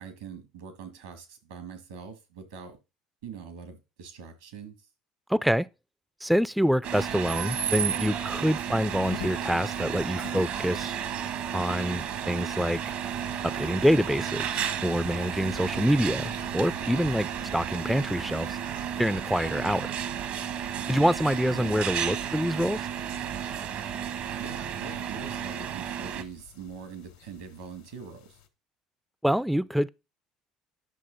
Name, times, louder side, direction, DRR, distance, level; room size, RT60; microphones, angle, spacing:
voice 1, 0.0-2.8 3.2-4.9 21.5-21.8 24.4-28.4, right 6 dB, 80° right, 2.0 m, -43 dB
voice 2, 5.3-5.7 6.2-10.9 11.5-12.8 13.4-18.6 19.0-19.9 20.9-22.8 29.2-29.9, equal, ahead, 0.3 m, -26 dB
sound 1, 6.8-26.2, right 9 dB, 60° right, 1.0 m, -33 dB
sound 2, 8.9-28.5, left 10 dB, 85° left, 1.4 m, -50 dB
10.5 x 6.2 x 3.9 m
hypercardioid pair, 60°, 3 cm